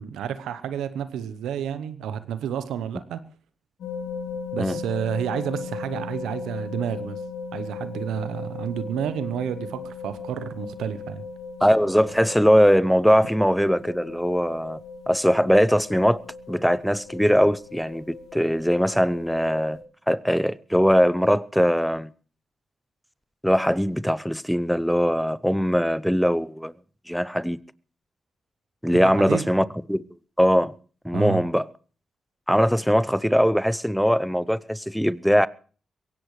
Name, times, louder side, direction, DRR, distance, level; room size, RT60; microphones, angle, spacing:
voice 1, 0.0-3.2 4.5-7.2 7.5-11.2 29.0-29.5 31.1-31.4, right 9 dB, 85° right, 0.9 m, -30 dB
sound 1, 3.8-19.8, left 5 dB, 80° left, 2.6 m, -37 dB
voice 2, 11.6-14.8 15.1-16.2 16.5-19.8 20.1-22.1 23.4-26.7 27.1-27.6 28.8-30.0 30.4-30.7 31.0-31.7 32.5-35.5, equal, ahead, 0.7 m, -21 dB
22.5 x 16.5 x 3.2 m
supercardioid pair, 50°, 0 cm